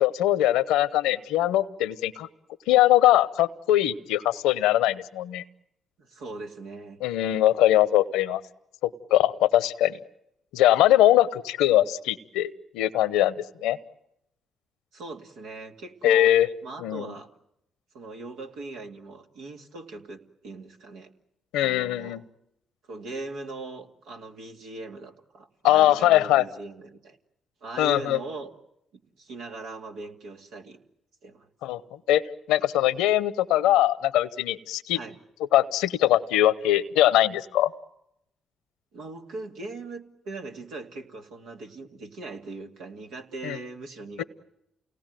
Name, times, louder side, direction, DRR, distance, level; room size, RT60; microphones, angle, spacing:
voice 1, 0.0-2.3 2.7-5.4 7.0-8.4 8.8-10.0 10.5-13.3 13.6-13.8 16.0-16.5 16.8-17.1 21.5-22.2 25.6-26.4 27.8-28.2 31.6-31.8 32.1-32.2 32.5-35.0 35.5-37.7 43.4-43.6 44.2-44.3, left 13 dB, 85° left, 17 dB, 0.9 m, -21 dB
voice 2, 6.0-7.0 14.9-16.3 16.6-17.3 17.9-21.1 21.6-22.2 22.9-27.2 27.6-28.5 28.9-30.8 31.2-31.5 34.9-35.2 38.9-44.2, right 3 dB, 80° right, 2 dB, 2.4 m, -40 dB
29.0 x 19.0 x 9.2 m, 0.81 s
supercardioid pair, 55°, 0 cm